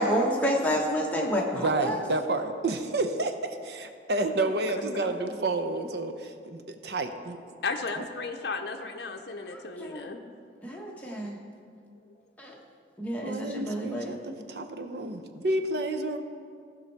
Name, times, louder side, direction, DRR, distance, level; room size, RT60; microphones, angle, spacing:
voice 1, 0.0-2.0 9.5-10.1 10.6-11.4 12.4-12.6 13.0-14.3, equal, 10° left, -2 dB, 1.1 m, -29 dB
voice 2, 1.5-7.4 8.0-8.1 13.2-16.2, right 2 dB, 65° right, 8 dB, 0.7 m, -30 dB
voice 3, 7.6-10.2, left 4 dB, 65° left, 3 dB, 0.6 m, -34 dB
15.0 x 5.4 x 4.6 m, 2.3 s
head